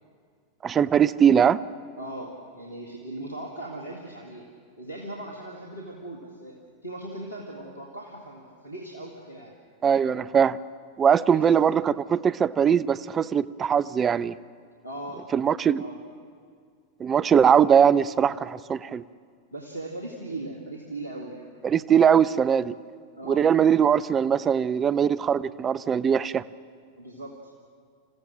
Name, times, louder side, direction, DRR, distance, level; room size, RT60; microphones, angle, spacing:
voice 1, 0.6-1.6 9.8-10.6 11.0-14.4 15.3-15.8 17.0-19.0 21.6-22.7 23.2-26.4, right 8 dB, 25° right, 16 dB, 0.5 m, -21 dB
voice 2, 2.0-4.5 4.8-6.6 6.8-9.5 11.3-11.5 14.8-15.3 15.7-16.0 19.5-21.5 23.2-23.5 27.0-27.5, right 1 dB, 85° left, -1 dB, 2.0 m, -38 dB
27.5 x 15.5 x 6.3 m, 2.1 s
figure-of-eight pair, 90°, 0 cm